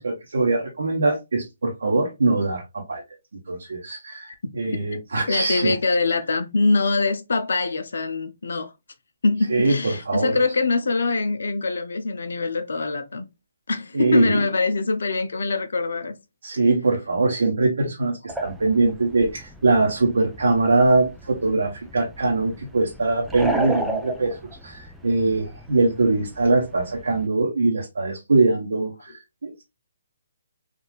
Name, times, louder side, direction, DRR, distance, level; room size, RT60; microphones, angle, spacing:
voice 1, 0.0-3.0 3.5-5.7 9.5-10.4 13.9-14.4 16.4-29.6, right 3 dB, 75° right, 0.9 m, -22 dB
voice 2, 5.3-8.7 9.2-13.2 13.7-16.2, left 3 dB, 70° left, 0.5 m, -23 dB
sound 1, 18.3-27.3, right 1 dB, 5° right, 0.4 m, -34 dB
3.7 x 2.4 x 2.4 m
figure-of-eight pair, 145°, 0 cm